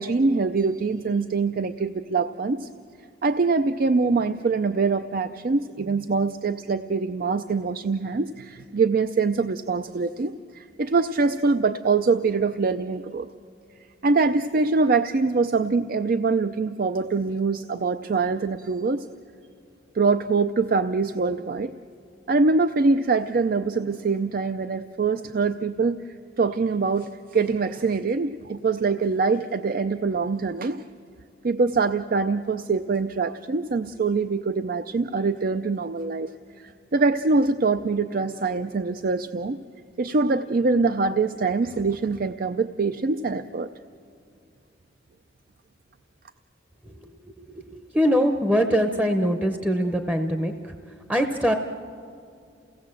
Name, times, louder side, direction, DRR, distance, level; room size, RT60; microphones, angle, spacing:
voice 1, 0.0-2.7 3.2-13.3 14.0-19.1 19.9-21.7 22.3-26.0 26.4-30.8 31.4-39.6 40.0-43.7, right 4 dB, 50° right, 10 dB, 0.5 m, -24 dB
voice 2, 47.4-51.5, equal, 10° right, 5 dB, 0.8 m, -23 dB
29.0 x 17.5 x 7.6 m, 2.4 s
head